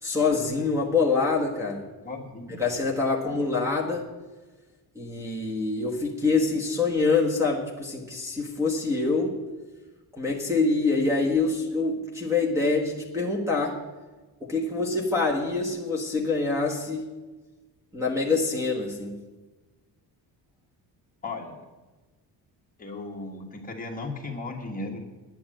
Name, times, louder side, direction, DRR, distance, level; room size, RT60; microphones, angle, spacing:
voice 1, 0.0-1.8 2.6-4.1 4.9-9.4 10.2-13.8 14.4-17.1 17.9-19.2, left 3 dB, 5° right, 1 dB, 1.3 m, -25 dB
voice 2, 2.0-2.6 3.2-3.4 21.2-21.6 22.8-25.0, left 3 dB, 20° left, 0 dB, 1.6 m, -36 dB
9.6 x 9.6 x 7.7 m, 1.2 s
cardioid pair, 165°, 38 cm